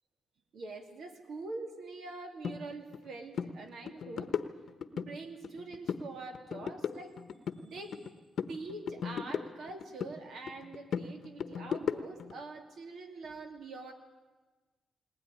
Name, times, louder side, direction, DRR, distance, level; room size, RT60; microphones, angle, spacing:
voice 1, 0.5-4.3 4.9-7.2 7.6-8.1 8.5-13.9, right 3 dB, 70° right, 4 dB, 2.7 m, -44 dB
sound 1, 2.4-2.6 2.9-3.1 3.3-3.5 3.9-5.1 5.4-6.1 6.3-8.1 8.4-10.1 10.5-12.3, left 7 dB, 60° left, 1.0 m, -36 dB
20.0 x 19.5 x 9.8 m, 1.3 s
wide cardioid pair, 145°, 0 cm